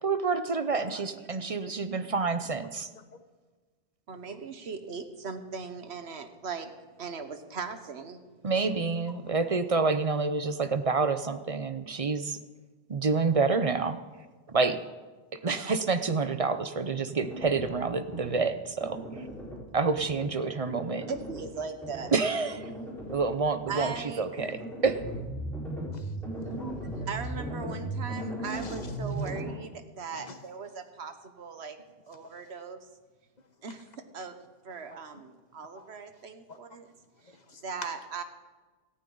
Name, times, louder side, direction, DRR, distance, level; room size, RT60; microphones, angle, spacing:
voice 1, 0.0-2.9 8.4-12.4 12.9-14.0 14.5-14.8 15.4-19.0 19.7-21.1 22.1-22.7 23.1-25.0, right 4 dB, 40° right, 10 dB, 0.7 m, -28 dB
voice 2, 0.7-1.3 4.1-6.7 7.0-8.2 21.1-22.1 23.7-24.3 27.1-31.8 32.1-32.9 33.6-33.9 34.1-34.4 34.6-36.9 37.6-38.2, right 5 dB, 85° right, 8 dB, 1.3 m, -39 dB
sound 1, 17.2-17.8 18.1-18.5 18.8-19.6 20.0-20.3 20.7-21.5 21.8-22.2 22.5-23.3 23.7-24.0 24.4-29.5, right 1 dB, ahead, 4.3 m, -37 dB
voice 3, 26.4-27.1 28.4-28.8 29.2-29.3 30.1-30.4 35.8-35.9 36.5-36.6 37.3-37.6, left 3 dB, 45° left, 8 dB, 1.0 m, -48 dB
18.0 x 14.0 x 3.9 m, 1.3 s
omnidirectional pair, 1.1 m